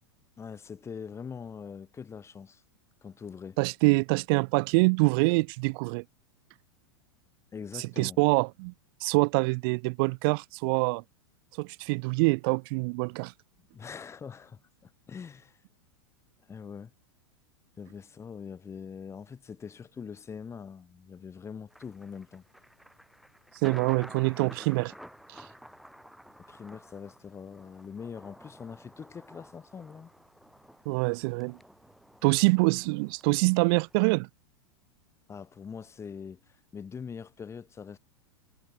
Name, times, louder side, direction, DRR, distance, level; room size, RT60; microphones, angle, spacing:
voice 1, 0.4-2.6 3.0-3.6 7.5-8.2 13.7-15.6 16.5-16.9 17.8-22.4 26.5-30.1 35.3-38.0, left 6 dB, 20° left, 1.4 m, -43 dB
voice 2, 3.6-6.0 7.7-8.7 9.0-11.0 11.6-13.3 23.6-24.9 25.3-25.5 30.9-31.6 32.2-34.3, right 30 dB, 50° right, 0.5 m, -25 dB
Thunder, 21.7-34.0, equal, ahead, 1.2 m, -52 dB
hypercardioid pair, 115°, 15 cm